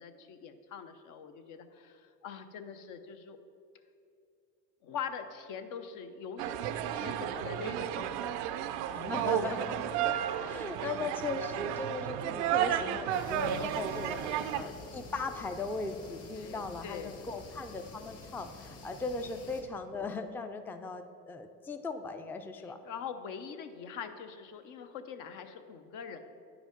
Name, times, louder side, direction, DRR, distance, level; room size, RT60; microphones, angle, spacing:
voice 1, 0.0-3.4 4.8-6.5 6.9-8.1 13.8-14.2 16.3-17.2 22.6-26.2, left 7 dB, 65° left, 8 dB, 0.8 m, -43 dB
sound 1, 6.4-14.6, right 10 dB, 85° right, 0.5 m, -33 dB
voice 2, 8.9-10.1 10.5-22.8, left 3 dB, 5° left, 7 dB, 0.4 m, -38 dB
sound 2, 13.1-19.6, left 3 dB, 50° left, 1.6 m, -48 dB
9.5 x 5.0 x 5.1 m, 2.5 s
supercardioid pair, 100°, 33 cm